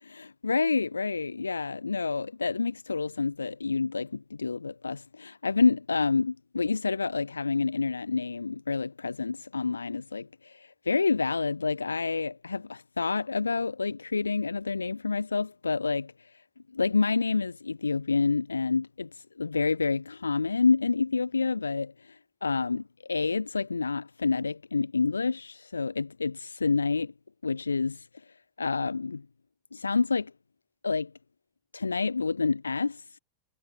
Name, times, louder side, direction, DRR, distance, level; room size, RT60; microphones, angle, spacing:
voice 1, 0.1-16.1 16.7-21.9 22.4-22.8 23.1-27.1 27.4-28.1 28.6-29.2 29.7-30.3 30.8-31.1 31.7-33.0, left 4 dB, 75° left, 3.2 m, -28 dB
figure-of-eight pair, 90°, 0 cm